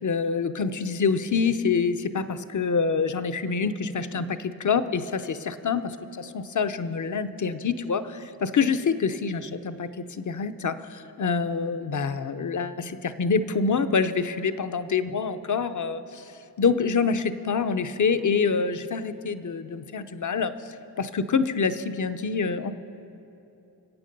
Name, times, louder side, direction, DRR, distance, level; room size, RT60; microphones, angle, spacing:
voice 1, 0.0-1.9 2.5-3.7 4.1-4.2 4.6-4.8 5.6-5.8 6.6-8.0 8.5-8.8 9.2-9.4 10.4-10.7 11.2-12.1 12.4-12.7 13.2-14.1 14.6-16.0 16.6-17.1 17.5-19.0 19.3-19.4 19.9-20.5 21.3-21.7 22.0-22.7, left 5 dB, 45° left, 11 dB, 0.7 m, -24 dB
25.0 x 8.4 x 5.3 m, 2.9 s
cardioid pair, 65°, 41 cm